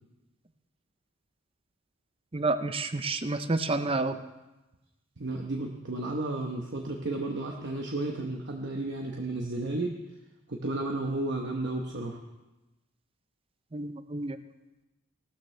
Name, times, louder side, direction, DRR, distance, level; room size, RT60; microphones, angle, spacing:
voice 1, 2.3-4.2 13.7-14.4, right 3 dB, 25° right, 10 dB, 0.6 m, -29 dB
voice 2, 5.2-10.0 10.5-12.2, right 2 dB, 55° right, 1 dB, 1.0 m, -33 dB
17.5 x 13.0 x 3.3 m, 1.1 s
head